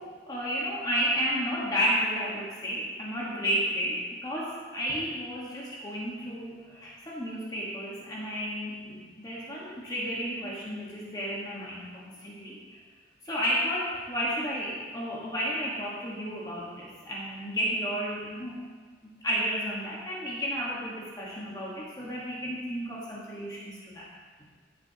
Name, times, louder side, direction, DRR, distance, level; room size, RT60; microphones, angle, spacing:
voice 1, 0.0-12.8 13.2-18.6 19.2-24.1, equal, 20° left, -5 dB, 1.4 m, -32 dB
15.0 x 6.2 x 2.9 m, 1.5 s
head